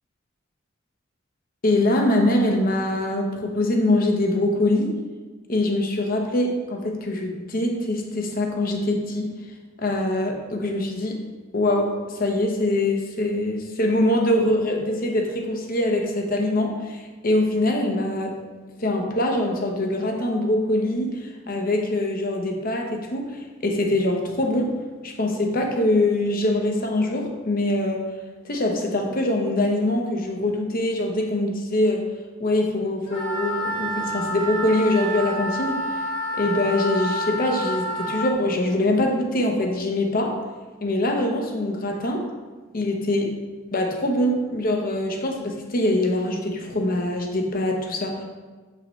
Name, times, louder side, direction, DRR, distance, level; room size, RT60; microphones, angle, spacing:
voice 1, 1.6-4.9 5.5-9.3 9.8-11.2 11.5-18.4 18.8-24.7 25.0-28.1 28.4-32.1 32.4-35.8 36.3-40.4 40.8-42.2 42.7-43.3 43.7-48.2, left 1 dB, 50° left, 2 dB, 0.9 m, -23 dB
Wind instrument woodwind instrument, 33.1-38.3, equal, 65° left, 2.0 m, -28 dB
6.8 x 5.5 x 3.2 m, 1.3 s
head